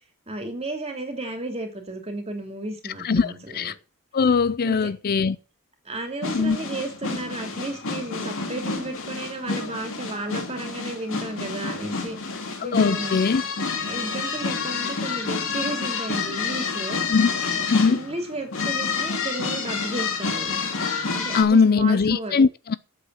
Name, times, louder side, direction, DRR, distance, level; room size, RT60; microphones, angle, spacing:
voice 1, 0.3-3.7 4.6-4.9 5.8-12.2 12.6-13.2 13.9-17.0 17.9-20.6 21.1-22.3, right 2 dB, 30° right, 2.9 m, -33 dB
voice 2, 3.0-3.7 4.1-5.4 6.3-6.6 12.6-13.4 17.1-17.3 17.7-18.0 21.3-22.8, left 5 dB, 45° left, 0.5 m, -20 dB
sound 1, 6.2-21.4, left 4 dB, 65° left, 2.5 m, -29 dB
8.7 x 7.9 x 7.5 m
head